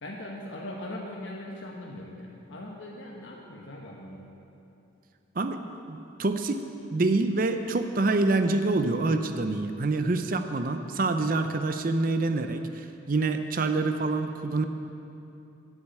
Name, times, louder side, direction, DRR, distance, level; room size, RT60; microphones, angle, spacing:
voice 1, 0.0-4.3, left 1 dB, 65° left, -2 dB, 1.1 m, -40 dB
voice 2, 5.9-6.6 6.9-14.6, right 3 dB, 45° right, 7 dB, 0.5 m, -26 dB
8.6 x 8.1 x 8.4 m, 2.8 s
head